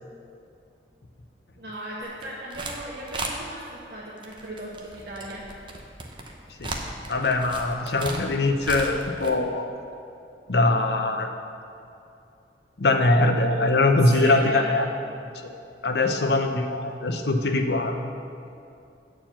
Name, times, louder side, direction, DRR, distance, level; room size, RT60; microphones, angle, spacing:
voice 1, 1.6-5.5 14.0-14.7, right 1 dB, 60° right, -6 dB, 1.2 m, -36 dB
sound 1, 2.0-2.8 3.1-3.3 4.2-9.3, right 3 dB, 30° right, 0.8 m, -36 dB
voice 2, 7.1-9.7 10.5-11.3 12.8-14.9 15.4-18.0, left 2 dB, 65° left, 5 dB, 0.7 m, -22 dB
9.1 x 4.5 x 7.2 m, 2.6 s
head